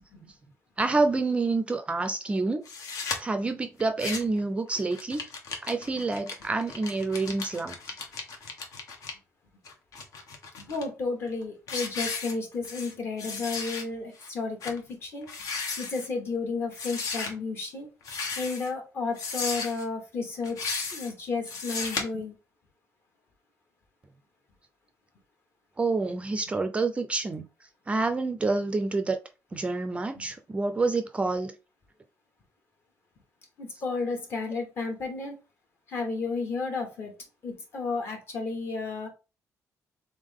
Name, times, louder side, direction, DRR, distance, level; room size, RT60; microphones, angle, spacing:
voice 1, 0.8-2.6 3.2-5.2 5.6-7.9 25.8-27.5 27.9-29.2 29.5-31.5, right 3 dB, 20° right, 0.4 m, -28 dB
sound 1, 2.7-3.2 3.8-4.4 4.7-9.1 9.7-10.8 11.3-11.4 11.7-12.9 13.2-13.8 14.2-14.3 14.6-14.8 15.2-16.1 16.7-17.3 18.0-18.7 19.2-19.8 20.4-21.1 21.5-22.0, left 4 dB, 70° left, 1.1 m, -35 dB
voice 2, 10.6-15.3 15.8-17.9 18.4-22.3 30.2-30.3 33.6-35.3 35.9-37.1 37.4-39.1, left 4 dB, 45° left, 1.3 m, -32 dB
3.6 x 3.6 x 3.6 m
cardioid pair, 145°, 6 cm